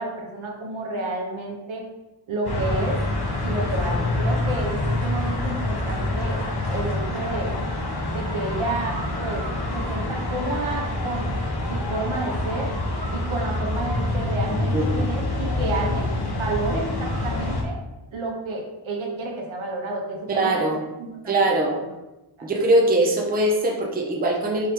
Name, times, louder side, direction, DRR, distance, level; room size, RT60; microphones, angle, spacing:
voice 1, 0.0-1.8 2.3-3.0 3.4-6.4 6.7-7.5 8.1-9.4 9.7-11.3 11.7-12.7 13.1-17.8 18.1-20.7 21.0-21.4 21.7-21.8 22.4-22.5, right 2 dB, 80° right, -1 dB, 1.1 m, -30 dB
sound 1, 2.4-17.6, left 2 dB, 50° left, 0.9 m, -26 dB
voice 2, 14.7-15.0 16.7-16.9 20.3-20.8 21.3-21.8 22.4-24.7, right 1 dB, 20° right, 0 dB, 0.5 m, -22 dB
4.8 x 3.4 x 2.9 m, 1.0 s
wide cardioid pair, 120°, 47 cm